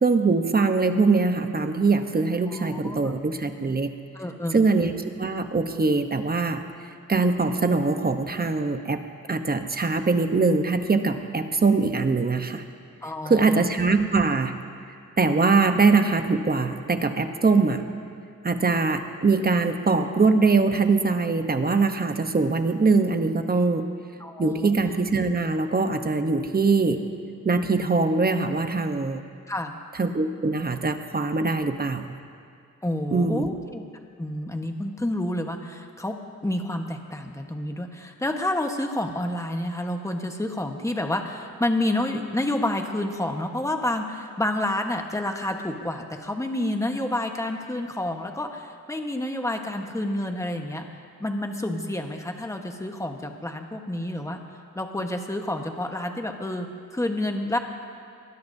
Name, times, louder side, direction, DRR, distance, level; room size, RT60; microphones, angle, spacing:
voice 1, 0.0-3.9 4.5-4.9 5.2-6.6 7.1-9.0 9.3-12.6 13.2-14.5 15.2-17.8 18.4-23.9 24.4-27.0 27.4-29.2 30.0-32.1 33.1-33.5, right 4 dB, 30° right, 7 dB, 0.9 m, -22 dB
voice 2, 2.5-3.1 4.1-4.6 13.0-13.6 24.2-24.7 29.5-29.7 32.8-33.9 34.2-36.2 36.4-50.9 51.2-54.4 54.7-57.6, left 1 dB, 10° left, 3 dB, 1.2 m, -29 dB
22.5 x 20.5 x 2.7 m, 2.5 s
wide cardioid pair, 110°, 32 cm